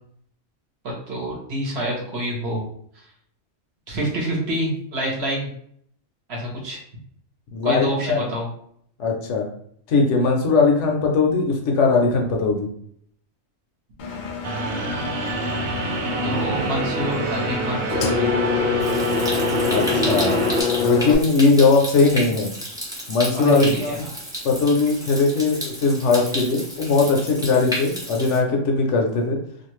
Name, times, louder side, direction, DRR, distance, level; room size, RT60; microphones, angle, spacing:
voice 1, 0.8-2.7 2.9-3.1 3.9-5.5 6.3-6.8 7.6-8.5 16.0-18.3 23.3-24.2, right 1 dB, 55° right, -2 dB, 1.0 m, -27 dB
voice 2, 7.5-8.2 9.0-9.5 9.9-12.7 19.7-20.5 20.8-22.5 23.1-23.9 24.4-29.4, left 4 dB, 70° left, 1 dB, 0.8 m, -19 dB
Engine, 14.0-21.2, left 6 dB, 90° left, 0.4 m, -26 dB
sound 1, 14.4-20.6, right 3 dB, 90° right, 1.0 m, -26 dB
Stream, 18.8-28.4, equal, 5° right, 0.3 m, -32 dB
2.5 x 2.3 x 3.0 m, 0.66 s
omnidirectional pair, 1.4 m